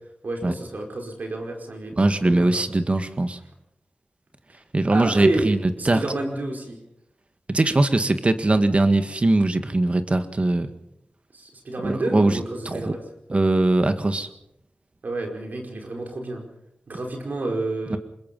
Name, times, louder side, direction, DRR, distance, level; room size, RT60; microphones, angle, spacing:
voice 1, 0.2-2.6 4.5-4.6 4.9-6.8 11.3-13.0 15.0-16.4 16.9-18.0, right 2 dB, 70° right, 2 dB, 5.0 m, -29 dB
voice 2, 1.9-3.4 4.7-6.0 7.5-10.7 11.8-12.4 12.6-12.9 13.3-14.3 17.9-18.0, right 2 dB, 40° right, 9 dB, 1.7 m, -21 dB
25.5 x 21.5 x 5.5 m, 0.79 s
cardioid pair, 50°, 3 cm